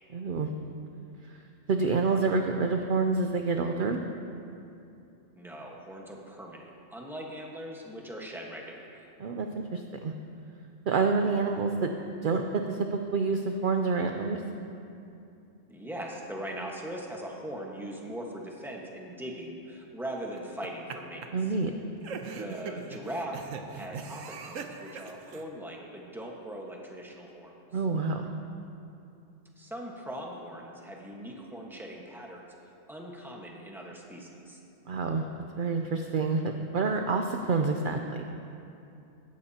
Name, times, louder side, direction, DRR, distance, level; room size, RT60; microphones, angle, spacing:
voice 1, 0.1-0.5 1.7-4.0 9.2-10.1 10.9-11.9 12.2-14.4 21.3-21.7 27.7-28.3 34.9-35.2 35.6-38.2, right 4 dB, 55° right, 4 dB, 0.6 m, -28 dB
voice 2, 5.3-9.1 15.7-21.2 22.2-23.4 23.7-27.5 29.6-32.5 32.9-34.6, right 1 dB, ahead, -1 dB, 1.2 m, -40 dB
sound 1, 20.4-20.9 21.2-21.3 22.0-25.4, right 5 dB, 90° right, 1.2 m, -40 dB
16.0 x 13.5 x 2.9 m, 2.7 s
omnidirectional pair, 1.3 m